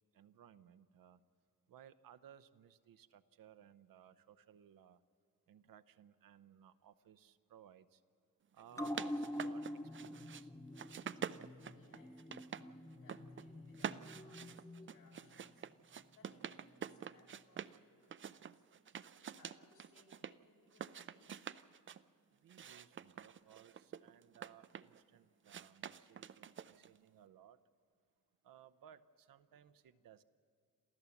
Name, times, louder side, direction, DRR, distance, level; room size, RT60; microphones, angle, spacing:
voice 1, 0.1-1.2 1.7-5.0 5.5-8.0 8.5-9.6 10.0-10.5 22.4-27.6 28.4-30.2, right 9 dB, 85° right, 13 dB, 0.8 m, -61 dB
sound 1, 8.6-10.4 10.7-12.6 12.9-13.4 13.7-17.8 18.1-20.3 20.7-22.0 22.5-25.0 25.5-27.0, right 8 dB, 35° right, 0.4 m, -47 dB
sound 2, 8.7-15.7 16.0-16.1, left 1 dB, 10° left, 0.9 m, -46 dB
voice 2, 11.1-15.7 16.1-21.6, left 2 dB, 80° left, -3 dB, 7.0 m, -68 dB
28.0 x 14.0 x 7.1 m, 2.5 s
cardioid pair, 110°, 33 cm